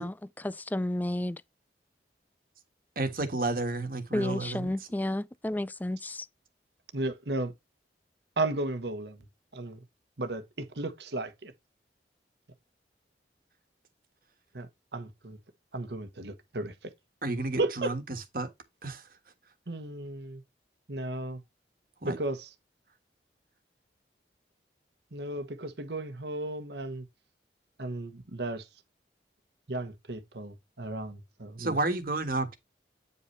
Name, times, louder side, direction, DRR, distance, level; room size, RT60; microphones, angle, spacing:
voice 1, 0.0-1.4 4.1-6.3, left 1 dB, 10° left, 0.3 m, -32 dB
voice 2, 2.9-4.7 17.2-18.0 18.3-18.5 18.8-19.0 22.0-22.2 31.6-32.6, right 2 dB, 55° right, 1.5 m, -31 dB
voice 3, 6.9-7.5 8.4-9.2 9.5-9.8 10.2-11.5 14.5-15.4 15.7-16.9 17.6-17.9 19.7-20.4 20.9-21.4 22.0-22.5 25.1-27.0 27.8-28.7 29.7-31.8, right 2 dB, 75° right, 1.2 m, -34 dB
9.1 x 5.5 x 3.3 m
head